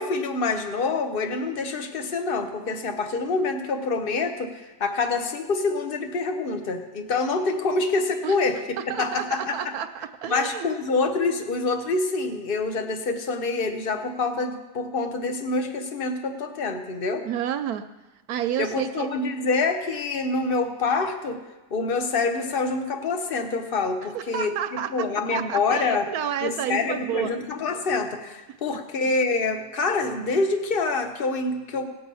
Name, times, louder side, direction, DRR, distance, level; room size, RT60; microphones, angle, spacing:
voice 1, 0.0-8.6 8.9-9.7 10.3-17.2 18.6-21.4 21.7-26.1 26.4-31.8, left 3 dB, 40° left, 6 dB, 1.1 m, -26 dB
voice 2, 8.9-10.7 17.3-17.8 18.3-19.1 24.1-24.9 25.3-27.3 28.7-28.8, right 9 dB, 75° right, 10 dB, 1.0 m, -30 dB
18.0 x 7.0 x 5.5 m, 1.1 s
omnidirectional pair, 1.7 m